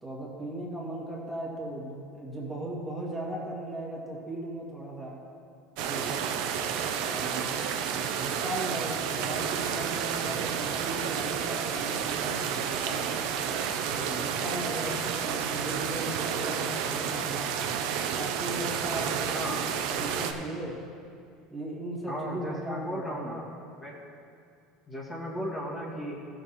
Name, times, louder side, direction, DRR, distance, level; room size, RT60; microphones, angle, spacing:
voice 1, 0.0-5.2 5.8-6.0 7.1-7.5 8.2-13.1 13.9-17.5 18.2-20.7 21.5-23.4, right 1 dB, 10° right, -5 dB, 2.2 m, -37 dB
sound 1, 5.8-20.3, right 8 dB, 70° right, 0.8 m, -31 dB
voice 2, 19.3-19.6 22.1-23.5 23.8-24.0 24.9-26.2, equal, 20° left, -4 dB, 2.0 m, -35 dB
14.0 x 6.5 x 4.3 m, 2.4 s
supercardioid pair, 115°, 0 cm